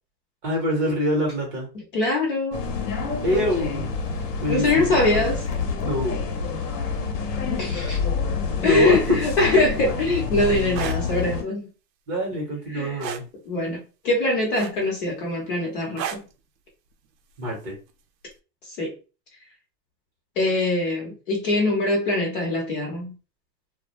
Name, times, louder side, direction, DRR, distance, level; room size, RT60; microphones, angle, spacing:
voice 1, 0.4-1.7 3.2-3.9 4.4-5.0 5.8-6.2 8.6-9.2 12.1-13.2 17.4-17.8, equal, 25° right, 0.8 m, -25 dB
voice 2, 1.7-2.6 4.5-5.5 7.5-8.0 8.6-11.6 12.7-13.0 13.5-16.2 18.8-18.9 20.4-23.1, left 2 dB, 35° left, 0.6 m, -23 dB
sound 1, 2.5-11.4, left 5 dB, 70° left, 0.8 m, -27 dB
sound 2, 10.6-11.0 13.0-13.3 14.6-15.0 16.0-16.3 17.7-17.9, right 9 dB, 85° right, 0.6 m, -31 dB
2.2 x 2.0 x 2.9 m
hypercardioid pair, 155°, 50 cm